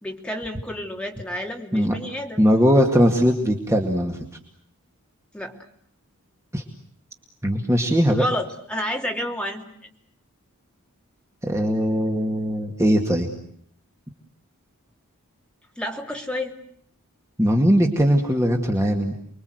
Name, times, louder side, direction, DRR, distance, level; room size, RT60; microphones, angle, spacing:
voice 1, 0.0-2.4 5.3-5.6 8.1-9.6 15.8-16.5, left 1 dB, 5° left, 1 dB, 3.1 m, -30 dB
voice 2, 2.4-4.2 6.5-6.6 7.4-8.2 11.4-13.3 17.4-19.1, equal, 15° right, 2 dB, 2.2 m, -20 dB
29.5 x 22.5 x 8.0 m, 0.65 s
head